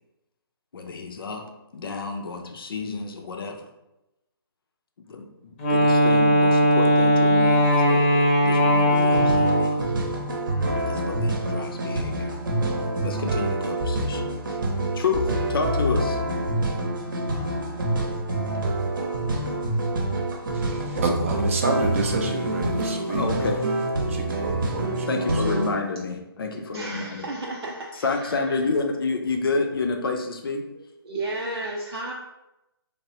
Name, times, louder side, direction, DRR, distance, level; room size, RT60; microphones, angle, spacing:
voice 1, 0.7-1.4 1.7-3.7 5.1-8.1 8.4-9.7 10.8-12.3 13.0-14.3 14.9-16.2 23.1-23.6 25.1-27.3 28.0-30.6, left 4 dB, 65° left, 4 dB, 0.5 m, -29 dB
Wind instrument woodwind instrument, 5.6-9.9, equal, 25° left, 0.6 m, -19 dB
sound 1, 8.9-25.7, right 1 dB, 55° right, 0.7 m, -26 dB
voice 2, 20.5-23.3 24.0-25.6, right 2 dB, 35° right, 3 dB, 0.4 m, -29 dB
voice 3, 26.7-28.4 31.0-32.1, right 2 dB, 90° right, -2 dB, 0.5 m, -33 dB
3.3 x 2.1 x 2.7 m, 0.94 s
hypercardioid pair, 155°, 13 cm